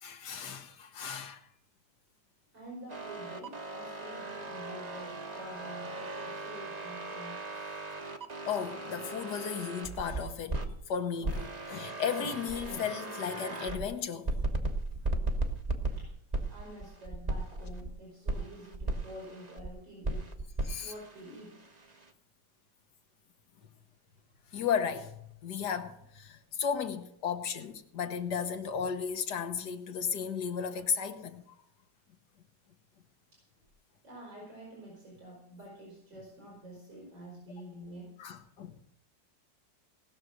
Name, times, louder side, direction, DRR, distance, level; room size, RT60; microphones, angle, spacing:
voice 1, 0.0-1.4 8.5-14.3 20.6-20.9 24.5-31.4 38.2-38.9, left 7 dB, 65° left, 1.7 m, -35 dB
voice 2, 2.5-7.4 16.0-16.2 16.5-20.3 20.8-21.8 33.3-33.4 34.0-38.1, right 1 dB, 85° right, 5.7 m, -48 dB
sound 1, 2.9-10.7 11.2-13.9 14.3-17.9 18.3-19.7 20.0-22.1, right 2 dB, 25° right, 1.1 m, -37 dB
19.0 x 6.6 x 6.4 m
omnidirectional pair, 2.0 m